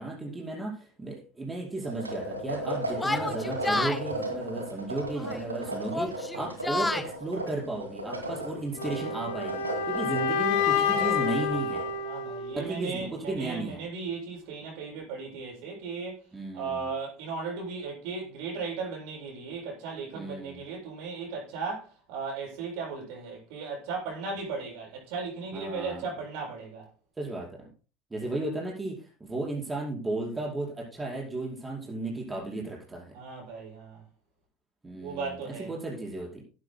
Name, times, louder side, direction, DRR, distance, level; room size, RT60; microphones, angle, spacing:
voice 1, 0.0-11.8 12.5-13.8 16.3-16.9 20.1-20.6 25.5-26.0 27.2-27.5 28.1-33.1 34.8-36.4, right 2 dB, 15° right, 5.1 m, -34 dB
sound 1, 1.8-12.0, right 1 dB, 85° right, 2.4 m, -36 dB
Yell, 3.0-4.0 5.1-5.5 5.8-7.1, left 2 dB, 10° left, 1.4 m, -30 dB
sound 2, 8.8-12.8, left 6 dB, 60° left, 2.6 m, -28 dB
voice 2, 12.0-16.3 16.5-26.9 33.1-34.0 35.0-35.7, right 4 dB, 60° right, 7.6 m, -36 dB
17.5 x 12.5 x 2.2 m
figure-of-eight pair, 70°, 0 cm